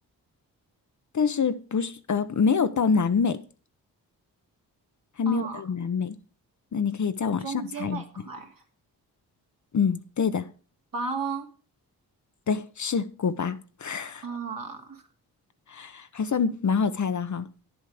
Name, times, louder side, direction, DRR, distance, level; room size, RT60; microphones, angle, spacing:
voice 1, 1.1-3.4 5.2-6.1 6.7-8.0 9.7-10.5 12.5-14.2 15.7-17.5, left 6 dB, 45° left, 0.9 m, -26 dB
voice 2, 5.3-5.6 7.2-8.5 10.9-11.5 14.2-15.0, right 4 dB, 55° right, 2.6 m, -34 dB
10.0 x 8.0 x 5.0 m
supercardioid pair, 55°, 40 cm